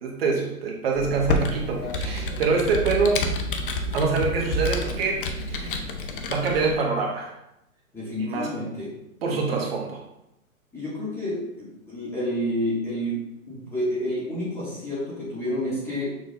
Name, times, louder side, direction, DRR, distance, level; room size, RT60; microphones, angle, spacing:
voice 1, 0.0-3.2 3.9-5.8 6.3-7.3 8.2-8.5 9.2-10.0, right 4 dB, 45° right, -1 dB, 1.0 m, -25 dB
Computer keyboard, 0.9-6.7, left 2 dB, 40° left, 0.5 m, -29 dB
voice 2, 7.9-8.9 9.3-9.6 10.7-16.1, equal, 5° left, -8 dB, 0.8 m, -29 dB
6.3 x 2.2 x 3.8 m, 0.85 s
hypercardioid pair, 140°, 42 cm